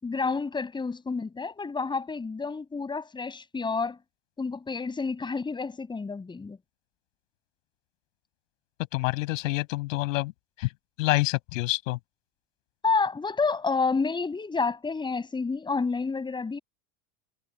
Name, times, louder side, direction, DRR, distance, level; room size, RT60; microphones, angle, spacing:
voice 1, 0.0-4.0 4.4-6.6 12.8-16.6, left 4 dB, 10° left, 6.9 m, -29 dB
voice 2, 8.9-10.3 10.6-10.7 11.0-12.0, left 21 dB, 85° left, 6.8 m, -27 dB
cardioid pair, 160°, 38 cm